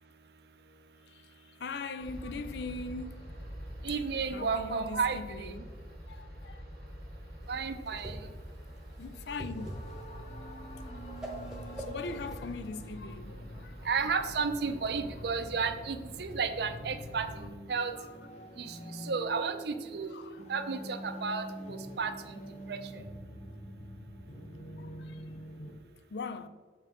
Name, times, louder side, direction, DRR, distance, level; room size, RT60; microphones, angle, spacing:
voice 1, 0.7-3.3 4.3-5.7 6.1-6.6 9.0-9.7 11.8-13.8 17.4-17.5 17.9-18.1 20.1-20.4 22.4-22.5 24.8-25.2 26.1-26.5, left 4 dB, 65° left, 0.4 m, -41 dB
sound 1, 2.0-17.5, equal, 90° left, 2.0 m, -46 dB
voice 2, 3.8-5.5 7.5-8.1 13.9-17.3 17.7-17.9 18.6-18.7 19.1-20.1 20.5-22.1 22.7-22.8, right 5 dB, 65° right, 0.5 m, -32 dB
Whoosh swoosh swish, 7.5-13.0, right 1 dB, 5° right, 1.1 m, -44 dB
sound 2, 9.5-25.7, right 1 dB, 40° left, 1.0 m, -46 dB
6.3 x 4.6 x 3.6 m
head